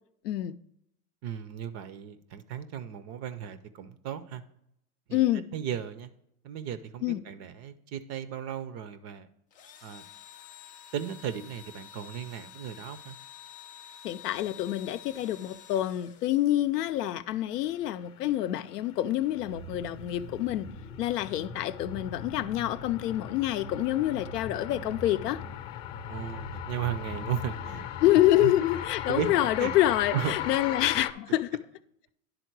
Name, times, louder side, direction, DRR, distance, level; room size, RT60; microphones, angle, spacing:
voice 1, 0.2-0.6 5.1-5.4 7.0-7.2 14.0-20.7 21.0-25.4 28.0-31.5, left 14 dB, 85° left, 0.6 m, -27 dB
voice 2, 1.2-4.4 5.1-5.2 5.5-6.1 6.4-9.3 9.8-10.0 10.9-13.2 26.1-27.8 28.4-28.5 29.1-29.7 30.1-30.5, right 9 dB, 35° right, 0.5 m, -35 dB
Engine / Drill, 9.5-16.8, left 10 dB, 20° left, 0.3 m, -50 dB
sound 1, 18.3-31.1, left 10 dB, 40° left, 0.7 m, -39 dB
sound 2, 19.5-28.7, right 4 dB, 80° right, 1.1 m, -47 dB
10.5 x 3.9 x 4.5 m
hypercardioid pair, 105°, 46 cm